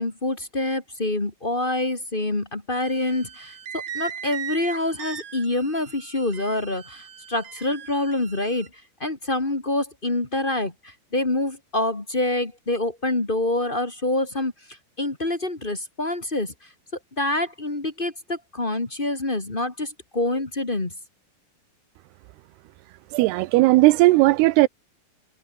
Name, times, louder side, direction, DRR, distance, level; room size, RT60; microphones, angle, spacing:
voice 1, 0.0-8.7 9.0-16.5 17.2-20.9, left 2 dB, 20° left, 1.4 m, -26 dB
sound 1, 2.8-8.7, right 8 dB, 70° right, 5.0 m, -38 dB
voice 2, 23.1-24.7, right 19 dB, 85° right, 2.7 m, -16 dB
omnidirectional pair, 4.7 m